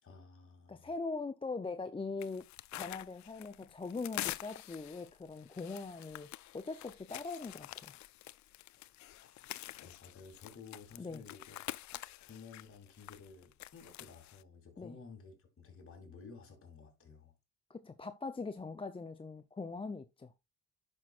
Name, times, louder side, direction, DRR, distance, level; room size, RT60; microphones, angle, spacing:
voice 1, 0.0-0.9 8.7-11.6 11.9-17.3, left 5 dB, 45° left, 2.9 m, -54 dB
voice 2, 0.7-2.4 2.7-7.9 11.0-11.2 14.8-15.0 17.7-20.3, left 3 dB, 20° left, 0.6 m, -41 dB
sound 1, 2.2-14.4, left 16 dB, 70° left, 0.4 m, -47 dB
10.5 x 6.0 x 2.5 m
cardioid pair, 90°, 30 cm